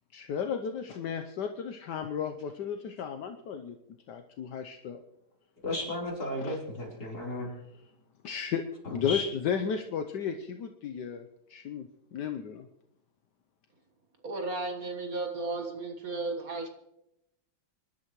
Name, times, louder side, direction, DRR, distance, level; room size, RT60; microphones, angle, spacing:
voice 1, 0.1-3.7 4.1-5.0 6.4-6.6 7.4-7.5 8.2-8.6 8.9-11.2 11.5-11.9 12.1-12.6, left 7 dB, 70° left, 6 dB, 1.3 m, -34 dB
voice 2, 5.6-7.5 8.8-9.3, left 2 dB, 55° left, -3 dB, 4.4 m, -34 dB
voice 3, 14.2-16.7, right 3 dB, 50° right, 4 dB, 1.8 m, -34 dB
26.0 x 11.5 x 3.1 m, 0.84 s
omnidirectional pair, 2.0 m